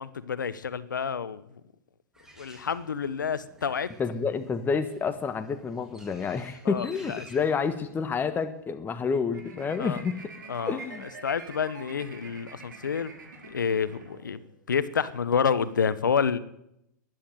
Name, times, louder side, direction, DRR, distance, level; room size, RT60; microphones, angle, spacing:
voice 1, 0.0-1.4 2.4-3.9 6.6-7.2 9.8-10.0 10.5-10.8 11.2-13.1 13.4-14.4 14.7-16.4, left 6 dB, 85° left, 16 dB, 1.0 m, -28 dB
Bird, 2.1-8.6, right 1 dB, 5° right, 3.6 m, -54 dB
voice 2, 4.0-10.2 10.7-11.1, left 5 dB, 20° left, 9 dB, 1.3 m, -29 dB
sound 1, 9.3-14.6, right 4 dB, 75° right, 4.7 m, -46 dB
14.0 x 10.5 x 9.1 m, 0.81 s
hypercardioid pair, 105°, 10 cm